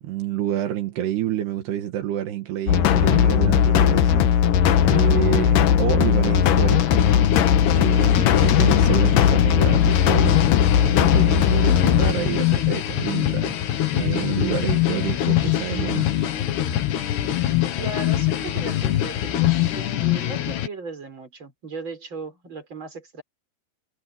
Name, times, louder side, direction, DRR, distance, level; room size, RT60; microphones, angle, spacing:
voice 1, 0.0-4.3 4.8-7.1 7.7-10.4 10.9-13.5 13.9-16.3, right 12 dB, 75° right, 3.7 m, -28 dB
sound 1, 2.7-12.1, left 9 dB, 65° left, 2.4 m, -18 dB
sound 2, 7.0-20.7, left 12 dB, 80° left, 4.0 m, -24 dB
voice 2, 17.8-23.2, right 3 dB, 30° right, 6.1 m, -37 dB
omnidirectional pair, 4.7 m